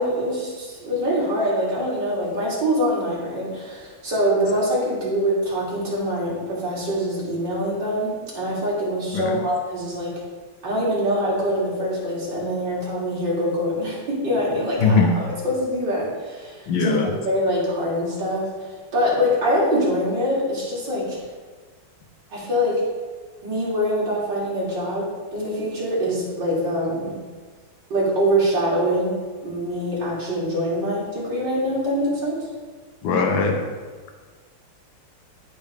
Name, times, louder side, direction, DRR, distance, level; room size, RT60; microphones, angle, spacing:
voice 1, 0.0-10.1 10.6-21.2 22.3-22.8 23.4-27.2 27.9-29.1 29.4-32.4, equal, 55° right, -7 dB, 3.5 m, -24 dB
voice 2, 14.8-15.1 16.7-17.1 33.0-33.6, left 4 dB, 65° left, 3 dB, 1.8 m, -19 dB
15.0 x 5.2 x 3.5 m, 1.4 s
omnidirectional pair, 2.4 m